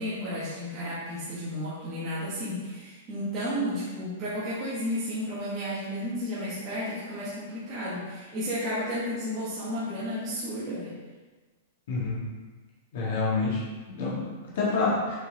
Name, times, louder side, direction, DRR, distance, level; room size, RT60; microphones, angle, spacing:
voice 1, 0.0-10.9, equal, 15° right, -11 dB, 1.4 m, -32 dB
voice 2, 11.9-12.2 12.9-15.2, left 3 dB, 50° left, -5 dB, 1.8 m, -28 dB
6.9 x 4.6 x 3.5 m, 1.3 s
supercardioid pair, 175°, 0 cm